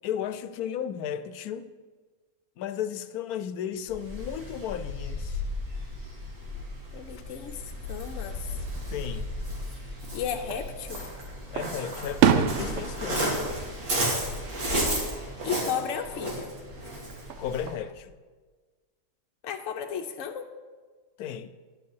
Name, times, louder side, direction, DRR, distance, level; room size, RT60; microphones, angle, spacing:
voice 1, 0.0-1.7 2.6-5.4 8.9-9.3 11.5-13.5 17.4-18.1 21.2-21.5, left 9 dB, 85° left, 1.1 m, -34 dB
Waves surf, 3.9-17.7, equal, 80° right, 2.7 m, -33 dB
voice 2, 6.9-8.6 10.1-11.0 15.4-16.5 19.4-20.5, left 8 dB, 70° left, 0.9 m, -34 dB
Fireworks, 10.4-11.1 11.6-14.7 15.0-15.6 17.1-17.9, right 8 dB, 65° right, 0.8 m, -28 dB
9.4 x 8.5 x 4.7 m
omnidirectional pair, 1.5 m